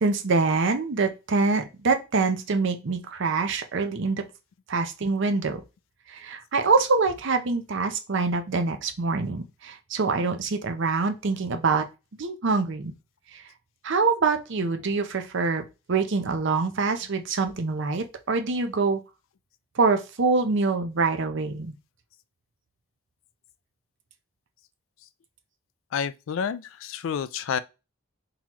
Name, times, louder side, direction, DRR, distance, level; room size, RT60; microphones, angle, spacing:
voice 1, 0.0-4.3 4.7-5.6 6.1-11.9 12.2-12.9 13.3-13.4 13.8-19.0 19.8-21.7, right 4 dB, 60° right, 0.6 m, -25 dB
voice 2, 25.9-27.6, left 7 dB, 65° left, 0.3 m, -29 dB
3.8 x 3.0 x 3.0 m
head